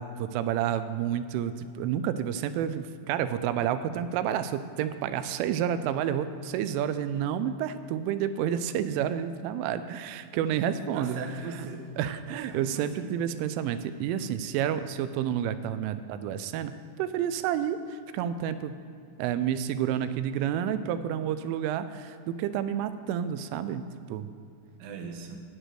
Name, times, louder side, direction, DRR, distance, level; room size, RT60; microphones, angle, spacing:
voice 1, 0.0-11.2 12.0-18.7 19.2-24.3, right 9 dB, 85° right, 12 dB, 3.0 m, -30 dB
voice 2, 10.9-11.9 12.3-13.2 24.8-25.4, right 4 dB, 70° right, 3 dB, 2.8 m, -39 dB
10.0 x 6.3 x 9.0 m, 2.5 s
omnidirectional pair, 5.6 m